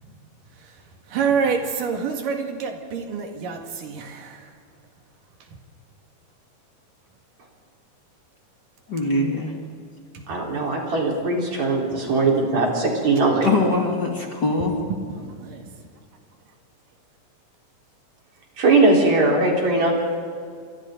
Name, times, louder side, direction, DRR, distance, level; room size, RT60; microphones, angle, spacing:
voice 1, 1.1-4.5 10.1-10.2 15.0-15.7, right 6 dB, 85° right, 3 dB, 3.6 m, -27 dB
voice 2, 8.9-9.5 13.4-14.8, left 3 dB, 35° left, 0 dB, 2.5 m, -22 dB
voice 3, 10.3-13.5 18.6-19.9, right 3 dB, 55° right, -2 dB, 5.4 m, -20 dB
29.5 x 25.5 x 3.9 m, 2.3 s
omnidirectional pair, 3.7 m